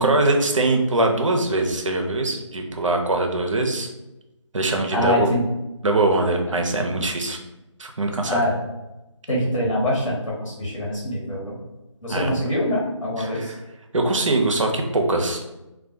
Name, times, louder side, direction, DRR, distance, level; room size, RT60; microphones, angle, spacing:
voice 1, 0.0-3.9 4.5-5.3 5.8-7.4 7.8-8.4 12.1-12.3 13.2-13.6 13.9-15.4, right 2 dB, 80° right, 3 dB, 0.5 m, -22 dB
voice 2, 4.9-5.4 8.3-8.5 9.3-11.6 12.0-13.5, left 1 dB, 85° left, -5 dB, 0.9 m, -24 dB
2.2 x 2.1 x 2.7 m, 1.0 s
figure-of-eight pair, 175°, 16 cm